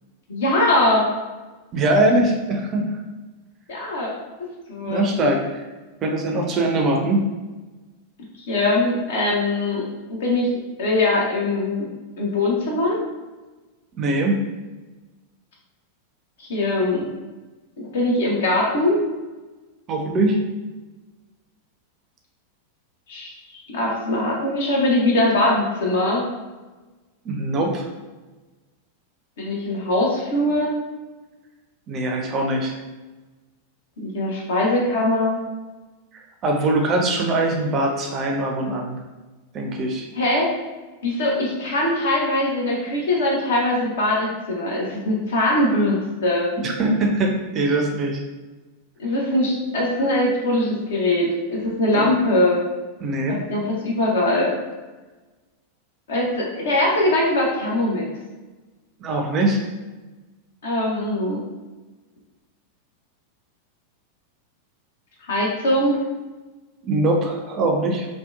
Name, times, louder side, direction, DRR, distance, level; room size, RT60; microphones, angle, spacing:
voice 1, 0.3-1.0 3.7-4.1 4.7-5.1 8.5-9.8 10.1-10.5 10.8-11.9 12.2-13.0 16.4-17.1 17.8-19.0 23.1-23.3 23.7-26.2 29.4-30.7 34.0-35.4 40.2-40.5 41.0-46.5 49.0-52.6 53.3-54.5 56.1-58.1 60.6-61.4 65.2-66.0, left 1 dB, 60° left, -3 dB, 0.7 m, -21 dB
voice 2, 1.7-2.9 4.8-5.6 6.0-7.2 14.0-14.4 19.9-20.4 27.2-27.9 31.9-32.8 36.4-39.0 39.5-40.1 46.6-48.2 51.9-52.1 53.0-53.4 59.0-59.6 66.8-68.1, right 2 dB, 30° right, 1 dB, 0.4 m, -22 dB
2.7 x 2.1 x 2.3 m, 1.2 s
figure-of-eight pair, 90°, 0 cm